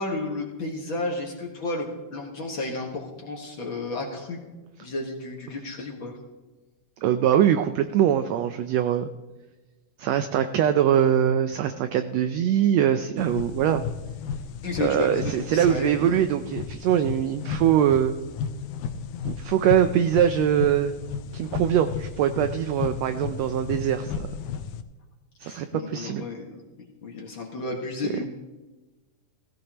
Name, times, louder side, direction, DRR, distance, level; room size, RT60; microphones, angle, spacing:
voice 1, 0.0-4.4 4.8-6.1 14.6-16.2 25.4-26.5 27.0-28.2, left 2 dB, 45° left, -1 dB, 1.9 m, -32 dB
voice 2, 7.0-9.1 10.0-13.8 14.8-18.2 19.2-20.9 21.3-24.3 25.4-26.2, right 10 dB, 80° right, 9 dB, 1.5 m, -22 dB
sound 1, 13.2-24.8, left 6 dB, 80° left, 2.0 m, -34 dB
16.5 x 16.0 x 3.0 m, 1.2 s
omnidirectional pair, 3.6 m